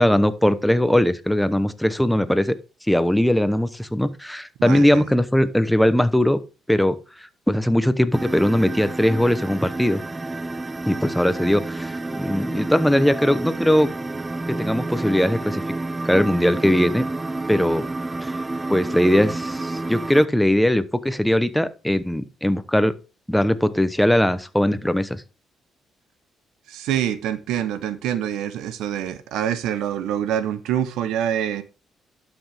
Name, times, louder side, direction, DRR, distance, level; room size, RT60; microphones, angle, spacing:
voice 1, 0.0-2.5 2.9-6.4 6.7-7.0 7.5-10.0 10.9-13.9 14.5-15.6 16.0-17.0 17.5-17.8 18.2-18.3 18.7-22.9 23.3-25.2, left 1 dB, 5° left, 0.9 m, -20 dB
voice 2, 4.6-5.1 26.7-31.6, right 10 dB, 90° right, 0.9 m, -26 dB
sound 1, 8.1-20.3, right 2 dB, 20° right, 0.6 m, -29 dB
11.5 x 6.0 x 3.4 m
cardioid pair, 90°, 0 cm